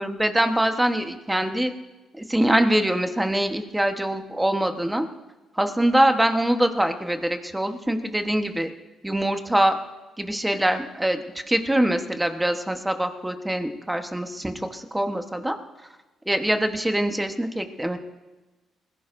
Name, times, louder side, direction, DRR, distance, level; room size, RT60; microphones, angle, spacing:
voice 1, 0.0-1.7 2.1-5.1 5.6-8.7 9.0-9.8 10.2-11.2 11.5-15.6 16.3-18.0, right 1 dB, 10° right, 6 dB, 1.1 m, -23 dB
21.0 x 15.5 x 2.6 m, 1.1 s
cardioid pair, 90°, 0 cm